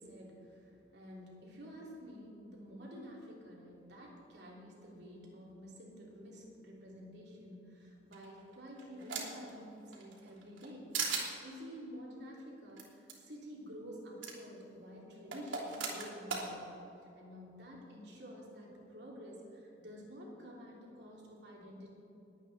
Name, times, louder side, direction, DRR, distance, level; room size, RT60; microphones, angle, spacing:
voice 1, 0.0-10.9 11.4-16.7 17.1-21.9, equal, 60° right, -3 dB, 3.0 m, -50 dB
sound 1, 8.1-9.5 9.9-10.7 10.9-11.3 12.8-12.9 13.1-13.2 14.2-14.3 15.3-16.5, right 5 dB, 90° right, 3.1 m, -37 dB
21.0 x 8.9 x 4.2 m, 2.9 s
head